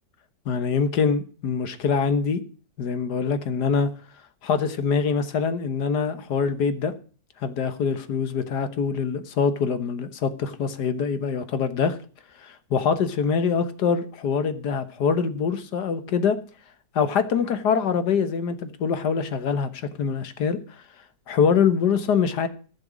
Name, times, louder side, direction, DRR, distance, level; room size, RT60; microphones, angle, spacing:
voice 1, 0.5-2.4 2.8-3.9 4.4-6.9 7.4-12.0 12.4-16.4 17.0-20.8 21.3-22.5, left 6 dB, 75° left, 1.8 m, -24 dB
14.5 x 6.1 x 6.2 m
omnidirectional pair, 1.8 m